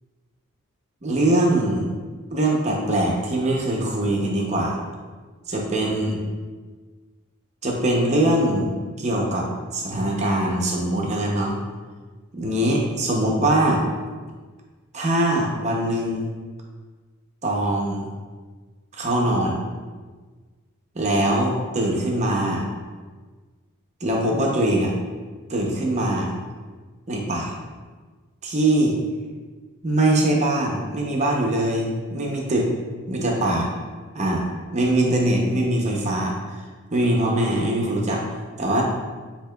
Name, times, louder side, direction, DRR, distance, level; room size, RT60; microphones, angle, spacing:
voice 1, 1.0-1.9 2.3-4.8 5.5-6.2 7.6-8.7 9.0-9.5 9.7-11.6 12.3-13.8 14.9-16.3 17.4-18.1 18.9-19.6 21.0-22.7 24.0-24.9 25.5-26.3 27.1-27.5 28.4-28.9 29.8-32.7 33.1-33.7 34.1-34.4 34.7-36.3 36.9-38.2 38.6-38.8, right 1 dB, 35° right, -1 dB, 0.6 m, -22 dB
8.0 x 2.8 x 2.2 m, 1.4 s
head